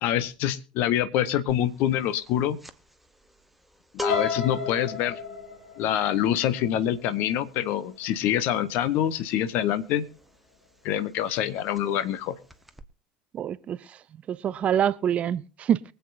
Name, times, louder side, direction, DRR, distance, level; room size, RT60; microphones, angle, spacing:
voice 1, 0.0-2.6 3.9-5.2 5.8-10.0 10.8-12.4, left 11 dB, 50° left, 1.0 m, -26 dB
sound 1, 1.5-1.8 2.0-10.6 10.9-11.1 11.3-12.2 12.5-12.8, left 1 dB, 5° right, 1.1 m, -38 dB
sound 2, 4.1-8.0 8.5-8.8 9.2-9.3, left 7 dB, 70° left, 3.2 m, -34 dB
voice 2, 13.3-14.0 14.3-15.8, right 9 dB, 35° right, 0.6 m, -26 dB
23.5 x 8.1 x 2.6 m
figure-of-eight pair, 75°, 4 cm